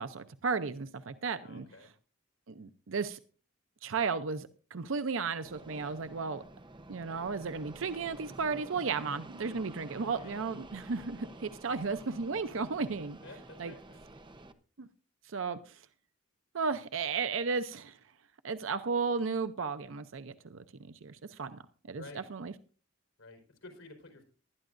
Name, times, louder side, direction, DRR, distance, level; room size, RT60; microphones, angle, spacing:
voice 1, 0.0-1.7 2.5-3.2 3.8-6.4 6.9-13.2 13.6-13.7 14.8-14.9 15.2-15.8 16.5-18.0 18.4-20.6 21.0-21.6 21.9-22.5, right 5 dB, 75° right, 11 dB, 0.6 m, -34 dB
voice 2, 1.4-1.9 10.0-10.3 13.2-14.0 21.3-21.4 21.9-22.2 23.2-24.2, left 2 dB, 75° left, 4 dB, 4.4 m, -51 dB
Fixed-wing aircraft airplane, 5.4-14.5, right 2 dB, 25° right, 0.9 m, -50 dB
19.5 x 12.5 x 2.6 m, 0.37 s
head